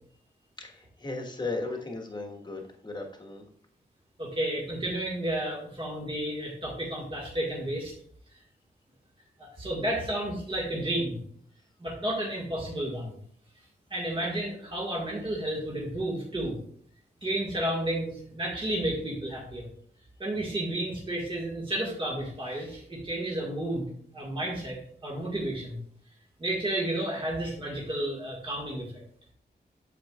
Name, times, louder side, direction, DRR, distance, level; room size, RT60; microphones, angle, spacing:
voice 1, 0.6-3.5 9.7-9.9, left 3 dB, 25° left, 1 dB, 1.3 m, -36 dB
voice 2, 4.2-7.9 9.4-11.2 11.8-13.1 13.9-16.6 17.2-19.7 20.2-23.9 24.1-24.8 25.0-25.8 26.4-28.9, right 1 dB, 30° right, -4 dB, 1.7 m, -31 dB
9.1 x 7.4 x 2.4 m, 0.63 s
wide cardioid pair, 130°, 18 cm